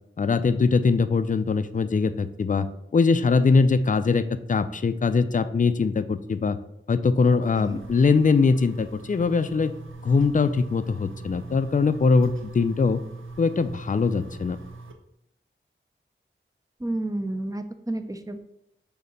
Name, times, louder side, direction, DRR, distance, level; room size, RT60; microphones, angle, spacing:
voice 1, 0.2-2.7 2.9-6.6 6.9-9.7 10.0-13.0 13.4-14.6, left 4 dB, 40° left, 12 dB, 0.4 m, -22 dB
sound 1, 7.4-14.9, right 3 dB, 75° right, 0.7 m, -41 dB
voice 2, 16.8-18.4, right 1 dB, 15° right, 8 dB, 0.6 m, -31 dB
6.5 x 2.9 x 5.2 m, 0.82 s
wide cardioid pair, 55°, 21 cm